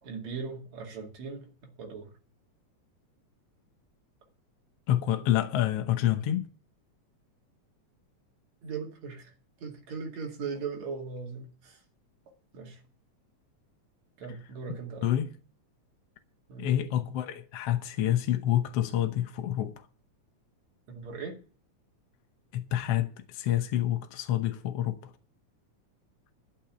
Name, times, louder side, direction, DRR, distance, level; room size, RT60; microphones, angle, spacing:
voice 1, 0.0-1.5 1.8-2.1 8.6-9.3 9.6-11.8 12.5-12.8 14.2-15.0 16.5-16.7 20.9-21.4, right 5 dB, 70° right, 3.6 m, -38 dB
voice 2, 4.9-6.5 14.3-14.4 14.7-15.3 16.6-19.9 22.5-25.1, left 12 dB, 65° left, 1.7 m, -28 dB
11.5 x 6.9 x 8.8 m
omnidirectional pair, 3.3 m